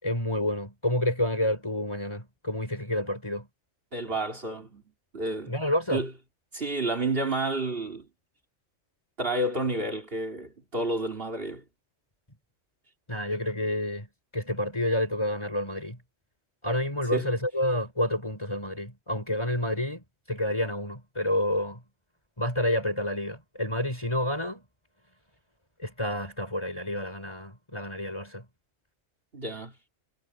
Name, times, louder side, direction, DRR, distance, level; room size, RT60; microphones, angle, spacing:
voice 1, 0.0-3.5 5.5-6.0 13.1-14.1 14.3-16.0 16.6-21.8 22.4-24.6 25.8-28.4, left 1 dB, 20° left, 4.6 m, -29 dB
voice 2, 3.9-4.8 5.1-5.5 5.9-6.1 6.5-8.1 9.2-11.6 17.0-17.3 29.3-29.7, right 2 dB, 50° right, 3.2 m, -30 dB
omnidirectional pair, 1.3 m